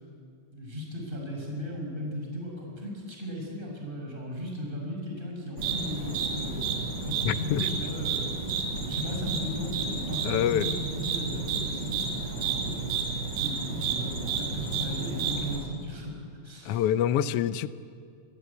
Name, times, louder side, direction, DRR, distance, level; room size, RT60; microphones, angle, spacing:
voice 1, 0.5-6.6 7.0-8.3 8.9-13.0 13.3-16.2 16.4-16.8, left 1 dB, 15° right, -1 dB, 6.2 m, -36 dB
sound 1, 5.6-15.6, right 5 dB, 35° right, 4.5 m, -31 dB
voice 2, 7.2-7.7 10.2-10.7 16.6-17.7, left 10 dB, 75° left, 13 dB, 1.4 m, -26 dB
29.0 x 22.5 x 8.4 m, 2.4 s
omnidirectional pair, 3.5 m